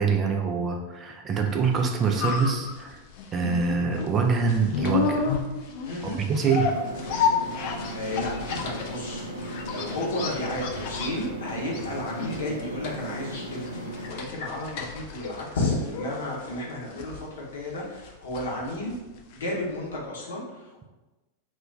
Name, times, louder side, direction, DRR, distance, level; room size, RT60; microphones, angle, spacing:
voice 1, 0.0-3.0 3.3-5.3 6.0-6.7, right 5 dB, 25° right, 3 dB, 0.3 m, -25 dB
sound 1, 1.6-19.6 19.9-20.0, left 5 dB, 50° left, 0.4 m, -32 dB
voice 2, 5.8-6.2 7.6-13.7 14.0-18.9 19.3-20.8, left 1 dB, 65° left, -3 dB, 0.8 m, -32 dB
sound 2, 6.6-14.1, right 1 dB, 90° right, 0.5 m, -36 dB
2.2 x 2.2 x 3.6 m, 1.1 s
figure-of-eight pair, 90°, 0 cm